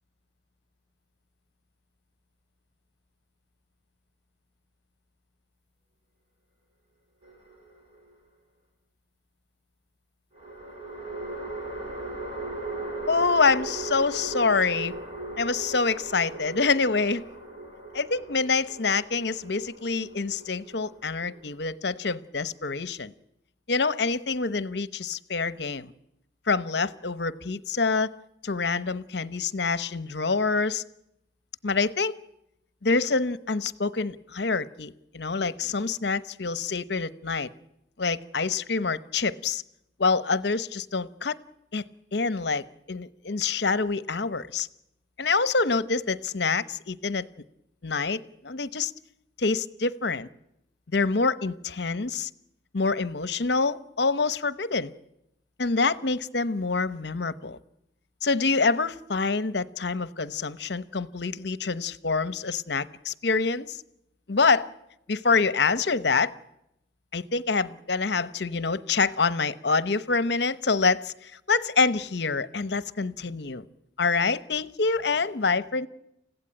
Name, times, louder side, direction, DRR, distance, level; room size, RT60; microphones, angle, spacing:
sound 1, 7.2-8.1 10.3-21.7, right 2 dB, 30° right, 5.8 m, -38 dB
voice 1, 13.1-14.9 15.4-17.3 17.9-23.1 23.7-25.9 26.5-28.1 28.4-30.8 31.6-32.1 32.8-37.5 38.0-39.6 40.0-41.4 41.7-41.8 42.1-44.7 45.2-47.3 47.8-48.9 49.4-50.3 50.9-52.3 52.7-54.9 55.6-57.6 58.2-63.8 64.3-64.7 65.1-66.3 67.1-73.6 74.0-75.9, left 4 dB, 60° left, 15 dB, 0.9 m, -26 dB
29.5 x 16.0 x 8.9 m, 0.83 s
head